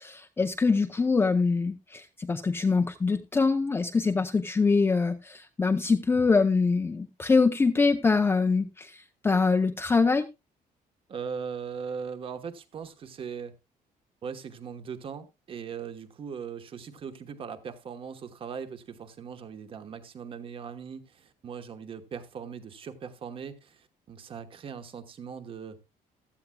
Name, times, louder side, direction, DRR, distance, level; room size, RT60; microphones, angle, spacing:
voice 1, 0.0-10.3, left 4 dB, 15° left, 0.6 m, -24 dB
voice 2, 11.1-13.5 14.2-25.8, right 6 dB, 35° right, 1.1 m, -39 dB
16.0 x 12.5 x 2.2 m
cardioid pair, 175°, 16 cm